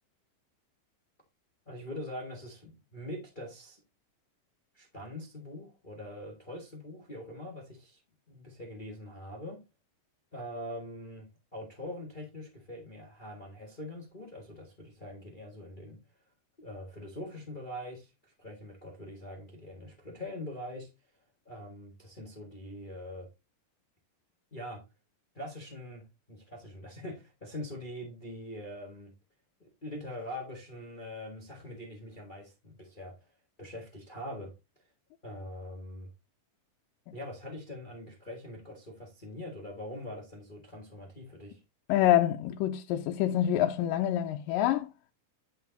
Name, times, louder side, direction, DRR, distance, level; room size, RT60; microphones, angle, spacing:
voice 1, 1.7-3.8 4.7-8.0 8.3-9.6 10.3-11.3 11.5-16.0 16.6-20.9 21.4-23.3 24.5-24.8 25.3-29.1 29.6-33.1 33.6-34.5 35.2-36.1 37.1-41.6, left 1 dB, 60° left, 0.5 m, -43 dB
voice 2, 41.9-44.9, left 12 dB, 85° left, 2.2 m, -26 dB
10.0 x 4.7 x 3.9 m
omnidirectional pair, 3.9 m